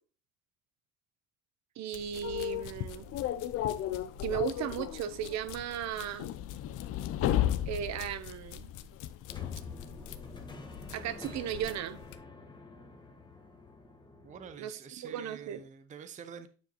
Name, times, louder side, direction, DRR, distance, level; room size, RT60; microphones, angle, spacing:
voice 1, 1.8-3.1 4.2-6.3 7.7-8.7 10.9-12.0 14.6-14.8 15.1-15.6, right 9 dB, 60° right, 0.9 m, -36 dB
sound 1, 1.9-12.2, left 9 dB, 80° left, 0.8 m, -49 dB
sound 2, 2.2-10.4, left 12 dB, 50° left, 0.5 m, -34 dB
sound 3, 9.3-14.5, left 3 dB, 15° left, 1.2 m, -48 dB
voice 2, 14.2-16.5, right 7 dB, 25° right, 0.6 m, -47 dB
9.2 x 4.9 x 3.0 m
cardioid pair, 145°, 30 cm